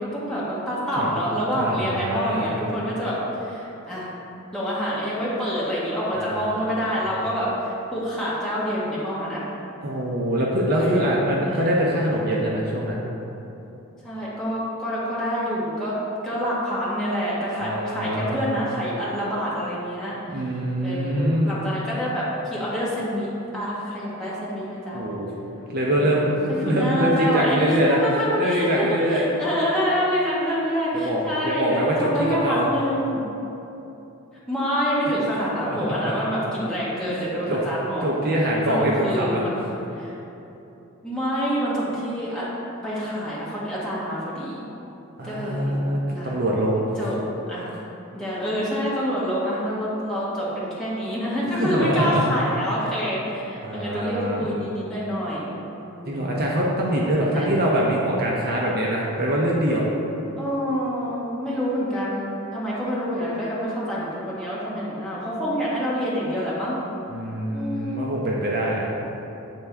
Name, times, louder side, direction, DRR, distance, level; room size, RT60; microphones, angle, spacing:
voice 1, 0.0-4.1 4.5-9.4 10.7-11.7 14.0-16.0 16.2-20.5 20.8-25.0 26.0-26.3 26.6-33.2 34.5-38.2 38.7-39.6 39.9-40.1 41.0-42.5 42.8-44.6 45.2-46.3 47.0-47.2 47.5-47.7 48.1-55.5 55.8-56.4 57.2-57.5 60.4-66.8 67.5-68.0, equal, 5° left, -9 dB, 1.1 m, -27 dB
voice 2, 1.6-2.5 6.1-7.0 9.8-13.0 17.6-18.4 20.3-21.6 24.9-25.3 25.7-26.3 26.6-28.0 28.4-29.2 31.0-32.7 35.6-36.1 37.1-37.2 37.5-37.6 38.0-39.4 45.2-46.8 51.5-52.2 53.6-54.4 56.0-59.9 67.1-69.0, right 1 dB, 45° right, -3 dB, 0.6 m, -24 dB
8.3 x 3.5 x 3.3 m, 2.9 s
head